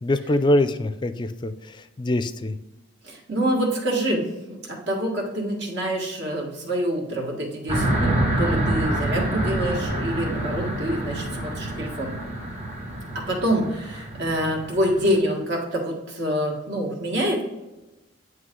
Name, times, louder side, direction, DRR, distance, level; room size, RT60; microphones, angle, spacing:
voice 1, 0.0-1.5 2.0-2.6, left 1 dB, 25° left, 11 dB, 0.4 m, -23 dB
voice 2, 3.0-12.1 13.1-17.4, equal, 60° right, 0 dB, 1.6 m, -26 dB
sound 1, 7.7-15.2, right 1 dB, 35° right, 1.4 m, -27 dB
9.4 x 3.2 x 3.7 m, 1.0 s
head